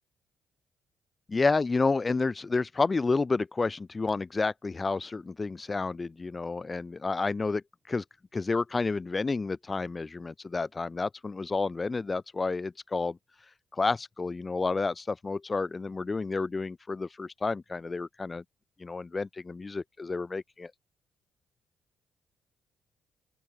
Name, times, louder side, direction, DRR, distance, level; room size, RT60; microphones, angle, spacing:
voice 1, 1.3-8.0 8.3-13.2 13.7-18.4 18.8-20.7, left 3 dB, 30° left, 2.5 m, -30 dB
open air
supercardioid pair, 60°, 0 cm